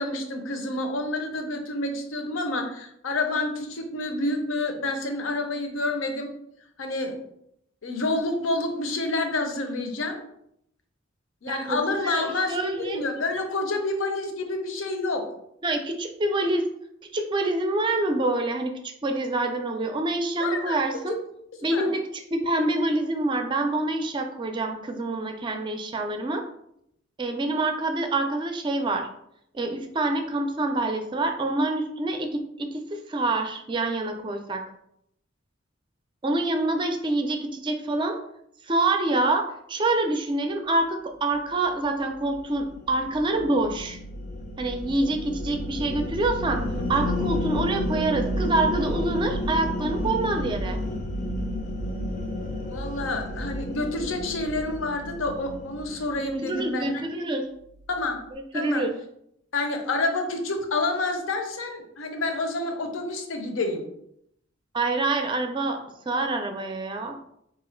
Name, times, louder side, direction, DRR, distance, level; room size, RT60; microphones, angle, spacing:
voice 1, 0.0-6.3 6.8-7.2 7.8-10.2 11.4-15.3 20.4-20.8 21.6-21.9 52.7-56.9 57.9-58.2 58.5-58.8 59.5-63.9, left 2 dB, 80° left, 5 dB, 0.6 m, -28 dB
voice 2, 11.5-13.0 15.6-16.7 17.1-21.2 21.6-22.0 22.3-26.4 27.2-29.1 29.5-34.6 36.2-38.2 38.7-44.0 44.6-46.6 46.9-50.8 56.2-57.5 58.3-58.9 64.7-65.8 66.1-67.1, right 2 dB, 25° right, 5 dB, 0.4 m, -26 dB
sound 1, 41.9-56.4, left 1 dB, 40° left, 0.5 m, -31 dB
3.1 x 2.4 x 4.3 m, 0.75 s
head